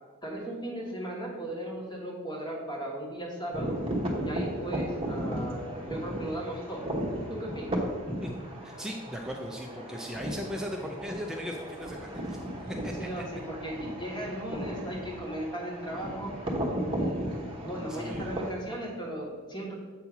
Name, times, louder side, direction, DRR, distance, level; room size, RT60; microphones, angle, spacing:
voice 1, 0.2-3.8 4.2-6.9 7.3-7.8 13.0-16.3 17.0-17.2 17.6-19.7, right 1 dB, 20° left, -3 dB, 1.4 m, -37 dB
sound 1, 3.5-18.5, equal, 25° right, 1.0 m, -35 dB
voice 2, 8.6-12.4 12.6-13.2 17.9-18.3, equal, 5° right, 1 dB, 0.4 m, -38 dB
8.0 x 2.8 x 5.9 m, 1.5 s
head